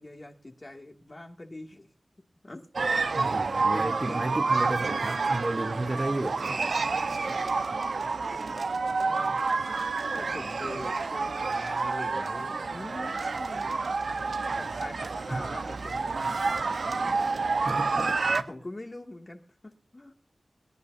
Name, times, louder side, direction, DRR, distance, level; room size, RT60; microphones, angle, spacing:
voice 1, 0.0-1.9 2.4-2.7 3.7-4.3 7.3-7.4 7.7-9.9 10.2-14.0 14.5-17.7 18.0-20.1, left 2 dB, 30° left, 3 dB, 2.2 m, -44 dB
sound 1, 2.7-18.4, right 4 dB, 80° right, 0.8 m, -29 dB
voice 2, 3.2-6.7 15.0-15.5 17.4-18.5, right 2 dB, 35° right, 5 dB, 0.9 m, -33 dB
23.5 x 12.0 x 2.7 m, 0.35 s
wide cardioid pair, 90°, 0 cm